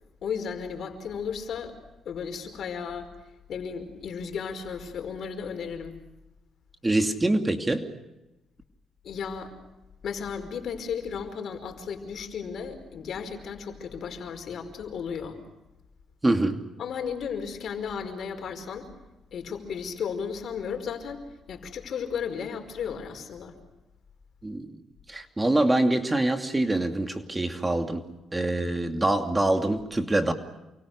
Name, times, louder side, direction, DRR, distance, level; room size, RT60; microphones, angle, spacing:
voice 1, 0.2-1.8 2.0-3.1 3.5-6.0 9.0-9.5 10.0-15.4 16.8-18.9 19.3-23.6, left 6 dB, 65° left, 7 dB, 5.0 m, -34 dB
voice 2, 6.8-7.8 16.2-16.6 24.4-24.7 25.1-30.3, right 2 dB, 15° right, 6 dB, 2.6 m, -25 dB
29.0 x 24.0 x 6.4 m, 1.0 s
cardioid pair, 90°, 0 cm